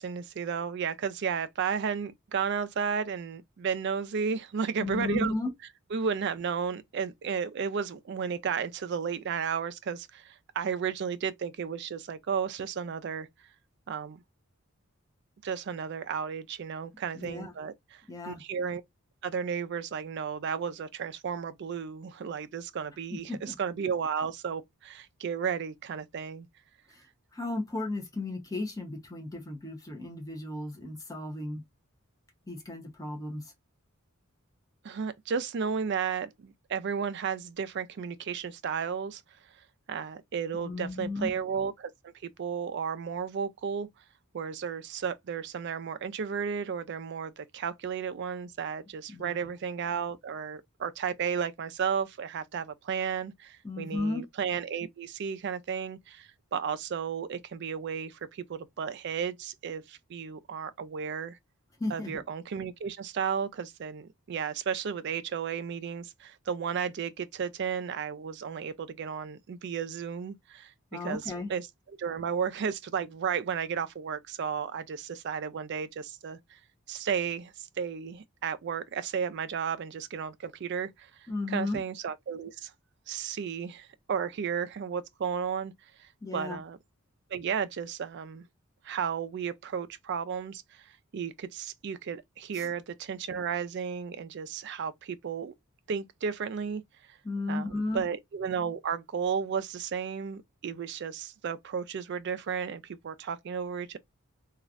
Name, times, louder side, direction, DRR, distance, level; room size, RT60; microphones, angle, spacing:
voice 1, 0.0-5.3 5.9-13.3 13.9-14.2 15.4-18.0 18.3-18.8 19.2-26.5 34.8-39.2 39.9-43.9 44.3-61.4 61.9-70.7 71.0-71.2 71.5-76.6 76.9-81.1 81.5-82.7 83.1-85.7 86.0-86.8 87.3-88.4 88.8-90.8 91.1-95.5 95.9-96.8 97.5-104.0, right 6 dB, 50° right, 0.3 m, -33 dB
voice 2, 4.8-5.5 17.1-17.5 18.1-18.4 23.3-23.5 26.9-27.0 27.3-31.6 32.5-33.5 40.6-41.3 49.1-49.5 53.6-54.2 61.8-62.2 70.9-71.5 81.3-81.8 86.2-86.6 92.5-92.7 97.2-98.0, left 2 dB, 15° left, 0.8 m, -34 dB
3.1 x 2.4 x 2.4 m
head